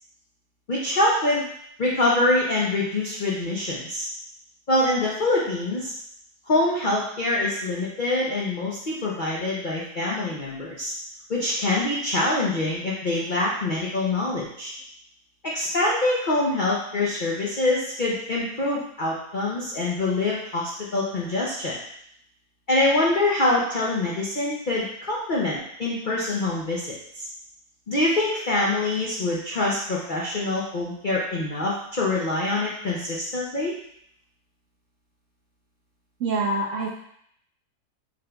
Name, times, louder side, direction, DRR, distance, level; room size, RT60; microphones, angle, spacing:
voice 1, 0.7-1.4 1.8-4.1 4.7-5.9 6.5-10.9 11.3-14.7 15.4-21.8 22.7-27.3 27.9-33.7, left 2 dB, 65° left, -5 dB, 0.4 m, -25 dB
voice 2, 36.2-36.9, right 2 dB, 70° right, -2 dB, 0.8 m, -25 dB
5.0 x 3.6 x 2.2 m, 0.70 s
omnidirectional pair, 1.7 m